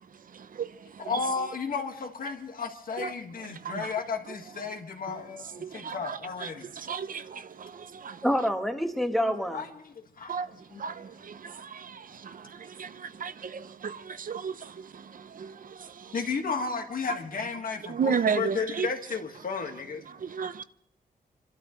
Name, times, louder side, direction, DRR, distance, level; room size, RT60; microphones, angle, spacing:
voice 1, 0.3-1.3 3.0-3.1 3.5-3.9 5.5-8.3 10.3-16.1 17.9-18.9 20.1-20.6, right 6 dB, 65° right, 0.7 m, -34 dB
voice 2, 1.0-6.7 9.2-10.4 10.7-10.8 16.1-20.0, left 5 dB, 70° left, 1.9 m, -33 dB
voice 3, 8.2-9.6, equal, ahead, 1.3 m, -27 dB
28.5 x 12.5 x 3.2 m
wide cardioid pair, 180°, 15 cm